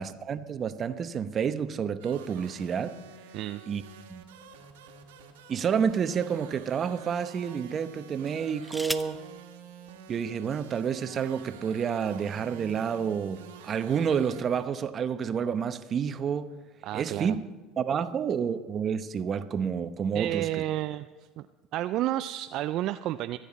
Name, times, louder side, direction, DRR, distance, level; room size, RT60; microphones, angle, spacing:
voice 1, 0.0-2.9 3.7-3.8 4.1-4.2 5.5-9.2 10.1-16.5 16.9-17.5 17.8-20.5, right 7 dB, 40° right, 0.9 m, -29 dB
sound 1, 2.0-14.4, right 6 dB, 85° right, 1.7 m, -49 dB
sound 2, 4.5-5.7 6.4-6.6 8.2-9.3 10.4-10.5 10.8-11.2, equal, ahead, 0.7 m, -39 dB
voice 2, 16.8-17.4 20.1-21.1 21.4-21.5 21.7-23.4, right 14 dB, 60° right, 0.4 m, -31 dB
25.0 x 9.2 x 4.2 m
hypercardioid pair, 80°, 0 cm